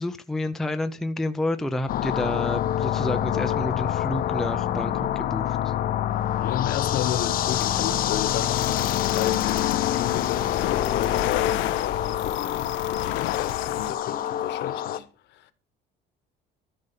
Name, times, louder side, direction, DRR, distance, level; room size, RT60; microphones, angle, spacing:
voice 1, 0.0-5.7, left 1 dB, ahead, 0.5 m, -29 dB
sound 1, 1.9-15.0, left 11 dB, 45° left, 0.7 m, -26 dB
voice 2, 6.4-15.5, left 11 dB, 60° left, 1.1 m, -33 dB
sound 2, 7.5-13.9, left 18 dB, 75° left, 0.5 m, -32 dB
13.5 x 5.5 x 6.9 m
cardioid pair, 175°, 20 cm